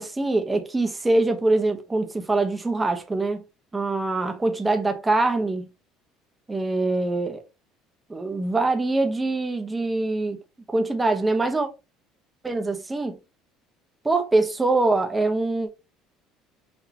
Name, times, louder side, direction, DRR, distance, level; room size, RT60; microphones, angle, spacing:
voice 1, 0.0-3.4 3.7-5.7 6.5-7.4 8.1-10.4 10.7-11.7 12.4-13.2 14.0-15.7, right 2 dB, 10° right, 0.9 m, -23 dB
6.1 x 2.8 x 2.8 m
cardioid pair, 130°, 0 cm